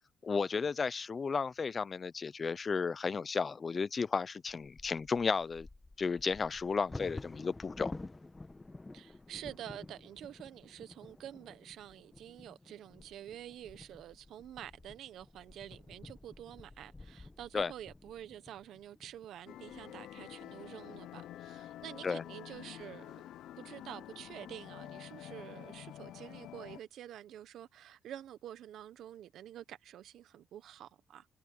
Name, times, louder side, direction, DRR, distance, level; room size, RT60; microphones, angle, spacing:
voice 1, 0.2-5.7 6.0-7.9 17.5-17.7 22.0-22.2, left 5 dB, 35° left, 0.7 m, -33 dB
Bird vocalization bird call bird song / Wind / Thunder, 4.5-20.4 21.0-21.1 21.5-21.9 22.3-22.8, left 2 dB, 20° left, 1.3 m, -51 dB
voice 2, 8.9-23.2 23.6-31.3, right 11 dB, 75° right, 1.0 m, -48 dB
sound 1, 19.5-26.8, left 12 dB, 80° left, 0.7 m, -48 dB
cardioid pair, 90°, 0 cm